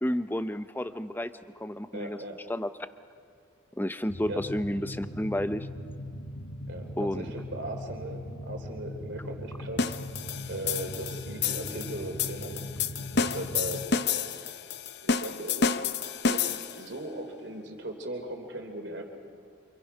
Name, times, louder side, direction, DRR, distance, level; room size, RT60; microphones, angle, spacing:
voice 1, 0.0-2.2 2.5-2.7 3.8-5.7 7.0-7.3, left 1 dB, 10° left, 11 dB, 0.6 m, -31 dB
voice 2, 1.9-2.4 4.3-4.4 6.7-9.9 10.5-12.7 13.1-14.3 15.0-15.8 16.3-19.0, right 1 dB, 60° right, 4 dB, 3.1 m, -38 dB
sound 1, 4.1-13.9, left 1 dB, 75° left, 1.3 m, -40 dB
sound 2, 9.8-16.9, left 5 dB, 50° left, 0.7 m, -30 dB
29.0 x 26.0 x 5.5 m, 2.4 s
head